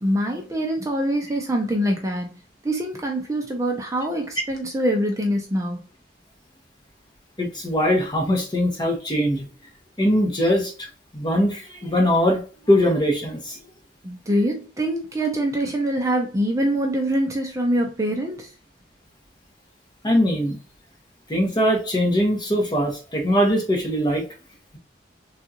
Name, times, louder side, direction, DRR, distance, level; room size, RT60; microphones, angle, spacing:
voice 1, 0.0-2.3 2.6-5.8 14.0-18.5, right 1 dB, 15° right, 2 dB, 0.5 m, -24 dB
voice 2, 7.4-9.5 10.0-10.9 11.1-12.4 12.7-13.6 20.0-20.6 21.3-24.2, equal, 25° left, 1 dB, 0.9 m, -21 dB
3.5 x 2.4 x 2.7 m, 0.37 s
head